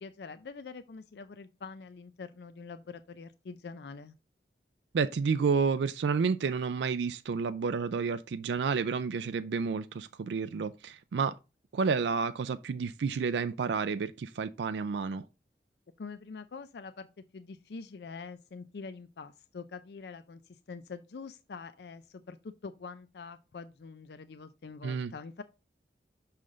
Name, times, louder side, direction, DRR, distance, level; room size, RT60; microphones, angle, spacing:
voice 1, 0.0-4.2 16.0-17.1 17.3-25.4, left 4 dB, 70° left, 0.4 m, -45 dB
voice 2, 4.9-11.4 11.7-15.3 24.8-25.1, right 5 dB, 80° right, 0.4 m, -30 dB
6.4 x 5.6 x 3.8 m
head